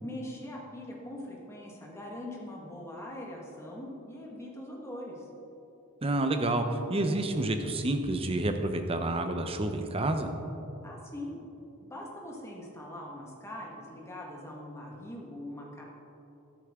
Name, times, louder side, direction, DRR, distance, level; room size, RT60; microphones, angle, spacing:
voice 1, 0.0-5.3 10.8-11.4 11.8-15.8, left 1 dB, 10° left, -2 dB, 1.6 m, -42 dB
voice 2, 6.0-10.3, right 2 dB, 25° right, 6 dB, 0.7 m, -29 dB
12.5 x 10.5 x 3.7 m, 2.9 s
head